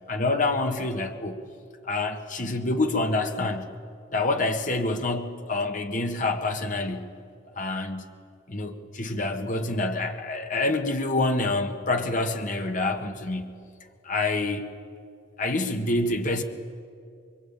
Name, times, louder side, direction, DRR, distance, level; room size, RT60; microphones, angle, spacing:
voice 1, 0.0-1.4 1.9-3.7 4.1-7.1 7.6-8.1 8.5-13.5 14.1-14.6 15.4-16.4, left 2 dB, 45° left, 5 dB, 1.7 m, -27 dB
24.0 x 23.5 x 8.9 m, 2.4 s
head